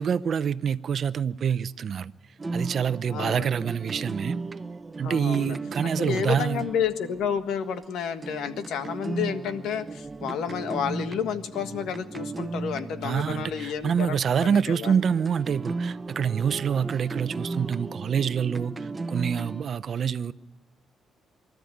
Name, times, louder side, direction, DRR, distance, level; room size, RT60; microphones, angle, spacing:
voice 1, 0.0-2.1 2.5-4.4 5.0-6.7 13.0-20.3, right 7 dB, 55° right, 0.7 m, -26 dB
sound 1, 2.4-14.4 14.8-19.6, right 3 dB, 25° right, 0.8 m, -36 dB
voice 2, 3.1-3.5 5.0-5.6 5.8-14.9, left 8 dB, 80° left, 1.6 m, -30 dB
24.0 x 13.0 x 9.3 m
cardioid pair, 90°, 0 cm